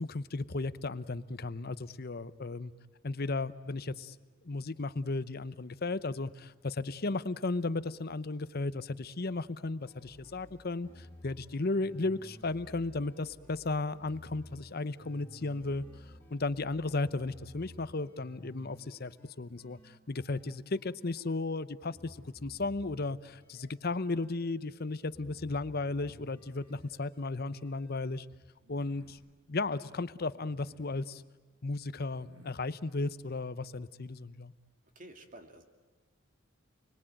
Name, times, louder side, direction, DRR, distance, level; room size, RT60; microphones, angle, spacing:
voice 1, 0.0-2.7 3.0-4.2 4.4-15.8 16.3-28.3 28.7-29.2 29.5-31.2 31.6-34.5, left 3 dB, 45° left, 14 dB, 0.8 m, -35 dB
sound 1, 9.8-21.4 21.9-28.4, equal, 10° left, 3.5 m, -55 dB
sound 2, 26.3-27.0 28.6-29.3 30.4-31.1 32.0-32.6, equal, 80° right, 4.9 m, -60 dB
voice 2, 34.9-35.6, right 1 dB, 40° right, 5 dB, 2.5 m, -50 dB
29.5 x 21.0 x 9.0 m, 1.3 s
head